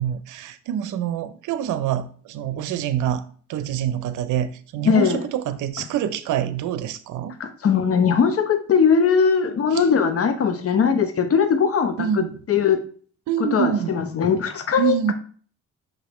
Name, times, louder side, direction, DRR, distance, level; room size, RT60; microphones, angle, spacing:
voice 1, 0.0-3.2 3.5-7.4 9.7-9.9 12.0-12.4 13.3-14.0 14.8-15.1, right 10 dB, 85° right, 0.7 m, -26 dB
voice 2, 4.8-5.2 7.4-12.1 12.5-12.8 13.5-15.1, left 6 dB, 50° left, 1.0 m, -20 dB
6.3 x 5.2 x 3.1 m
cardioid pair, 90°, 30 cm